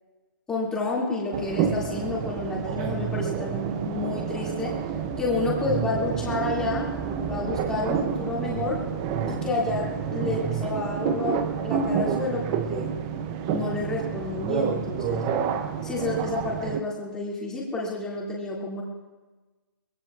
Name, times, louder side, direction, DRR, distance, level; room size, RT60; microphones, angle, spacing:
voice 1, 0.5-4.7 5.2-6.9 7.2-8.8 9.3-9.8 10.1-12.9 13.5-15.2 15.8-18.8, left 3 dB, 5° left, -4 dB, 2.3 m, -30 dB
sound 1, 1.3-16.8, right 7 dB, 15° right, 0.5 m, -29 dB
23.0 x 19.5 x 2.4 m, 1.2 s
hypercardioid pair, 165°, 12 cm